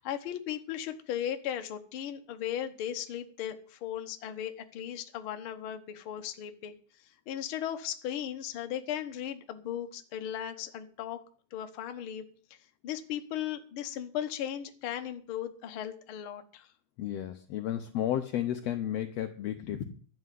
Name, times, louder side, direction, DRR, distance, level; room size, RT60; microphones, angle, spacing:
voice 1, 0.0-6.7 7.3-11.2 11.5-12.2 12.8-16.7 19.7-19.8, left 10 dB, 55° left, 7 dB, 1.6 m, -37 dB
voice 2, 17.0-19.8, left 11 dB, 70° left, 7 dB, 1.7 m, -32 dB
12.0 x 6.2 x 9.3 m, 0.43 s
omnidirectional pair, 3.5 m